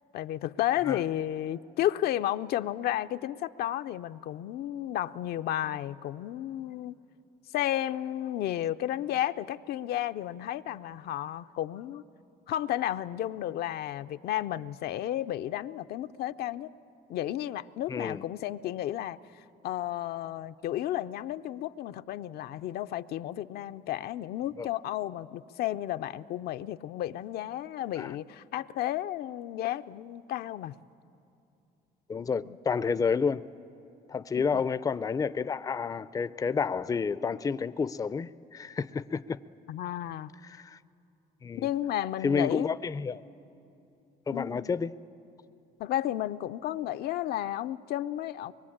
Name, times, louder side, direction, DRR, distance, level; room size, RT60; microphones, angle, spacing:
voice 1, 0.1-6.9 7.5-12.0 12.5-16.7 17.1-30.8 32.4-32.6 34.3-34.6 39.7-40.3 41.6-42.7 44.3-44.7 45.8-48.5, left 12 dB, 70° left, 0.6 m, -32 dB
voice 2, 17.9-18.2 24.6-24.7 28.0-28.1 32.1-33.4 34.1-39.4 40.6-40.8 41.4-41.7 42.2-43.2 44.3-44.9, left 5 dB, 20° left, 0.5 m, -30 dB
23.5 x 22.0 x 8.7 m
cardioid pair, 110°, 17 cm